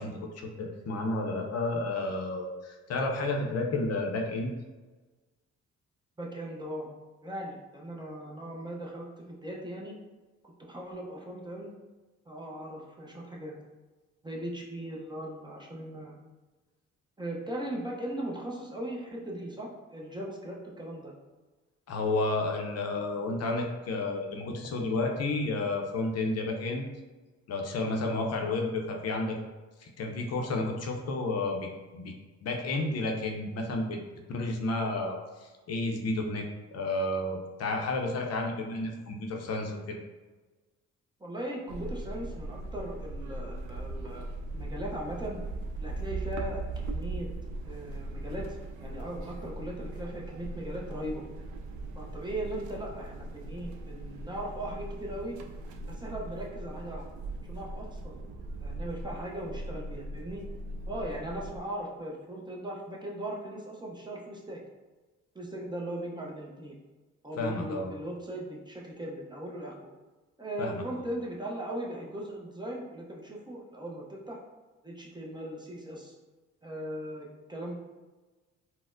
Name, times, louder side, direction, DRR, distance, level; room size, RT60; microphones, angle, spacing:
voice 1, 0.0-4.5 21.9-26.9 27.5-29.4 29.8-31.7 31.9-32.1 32.4-34.0 34.3-35.1 35.4-40.0 67.4-67.9 70.6-71.1, left 2 dB, 55° left, 2 dB, 0.6 m, -31 dB
voice 2, 6.2-6.9 7.2-10.0 10.6-11.7 12.3-13.5 14.2-16.2 17.2-21.1 28.4-28.5 41.2-44.3 44.5-45.4 45.8-47.3 47.6-51.2 52.0-55.4 55.9-57.1 57.5-58.2 58.6-60.4 60.9-64.6 65.3-66.7 67.2-69.9 70.4-74.4 74.8-76.1 76.6-77.7, right 1 dB, 15° right, -2 dB, 0.5 m, -38 dB
sound 1, 41.7-61.6, right 2 dB, 70° right, 0.5 m, -39 dB
4.1 x 2.0 x 2.5 m, 1.3 s
cardioid pair, 90°, 30 cm